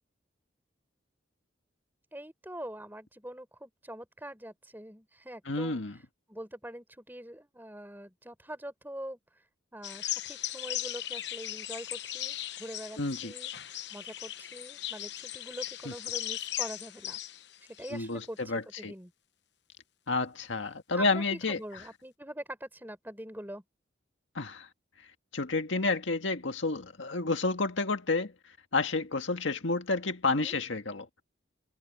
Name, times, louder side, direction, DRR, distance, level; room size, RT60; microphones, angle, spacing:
voice 1, 2.1-5.8 6.3-9.2 9.7-13.5 13.9-17.2 17.7-19.1 20.9-23.6 30.2-30.5, right 1 dB, 10° right, 4.2 m, -44 dB
voice 2, 5.5-6.0 13.0-13.3 17.9-18.9 20.1-21.6 24.4-24.7 25.3-28.3 28.7-31.1, left 3 dB, 75° left, 1.8 m, -30 dB
sound 1, 9.8-18.2, left 12 dB, 60° left, 0.9 m, -38 dB
head